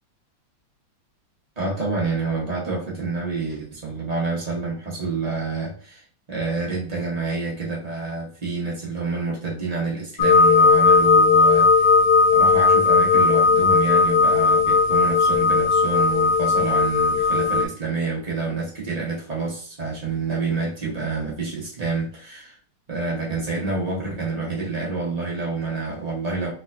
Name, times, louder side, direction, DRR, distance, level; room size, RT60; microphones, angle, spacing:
voice 1, 1.6-11.9 12.3-22.6 22.9-26.5, right 4 dB, 65° right, -4 dB, 0.4 m, -28 dB
sound 1, 10.2-17.6, left 4 dB, 85° left, 1.5 m, -17 dB
3.5 x 3.3 x 2.4 m, 0.43 s
omnidirectional pair, 2.4 m